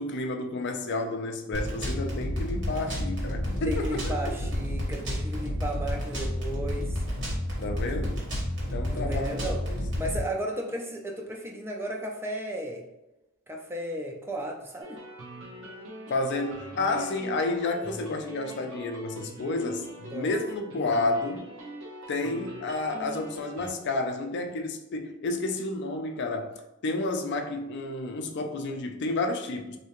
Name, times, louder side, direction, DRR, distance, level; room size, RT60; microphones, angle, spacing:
voice 1, 0.0-4.2 7.6-8.2 8.7-9.8 16.1-21.5 22.1-26.5 26.8-29.8, left 2 dB, 55° left, 0.4 m, -30 dB
sound 1, 1.5-10.2, equal, 60° right, 1.3 m, -30 dB
voice 2, 3.7-7.0 8.9-9.6 10.0-12.8 13.5-15.0 20.1-20.3, right 1 dB, 10° right, 0.4 m, -34 dB
sound 2, 14.8-23.7, right 1 dB, 85° right, 0.9 m, -42 dB
3.3 x 2.7 x 3.0 m
head